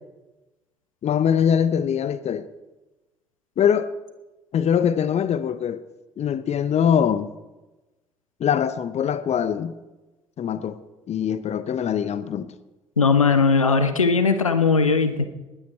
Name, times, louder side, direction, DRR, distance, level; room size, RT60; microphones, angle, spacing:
voice 1, 1.0-2.5 3.6-3.9 4.5-5.8 6.2-7.3 8.4-9.8 10.4-10.8 11.1-12.5, left 8 dB, 40° left, 0.8 m, -22 dB
voice 2, 13.0-15.3, left 4 dB, 85° left, 0.6 m, -19 dB
20.0 x 8.9 x 4.5 m
figure-of-eight pair, 50°, 17 cm